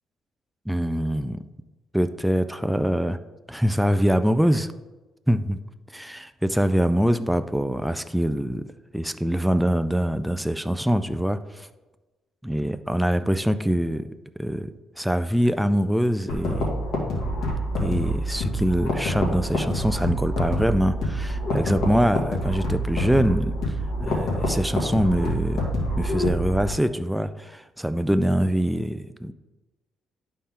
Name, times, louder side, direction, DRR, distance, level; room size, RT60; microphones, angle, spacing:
voice 1, 0.7-1.5 1.9-3.2 3.5-4.7 5.3-5.6 5.9-8.6 8.9-11.7 12.4-14.1 14.4-16.7 17.8-23.8 24.0-25.6 26.0-29.3, equal, ahead, 10 dB, 0.3 m, -24 dB
sound 1, 16.3-26.7, equal, 60° left, 2.2 m, -26 dB
11.5 x 4.3 x 3.7 m, 1.2 s
cardioid pair, 120°, 0 cm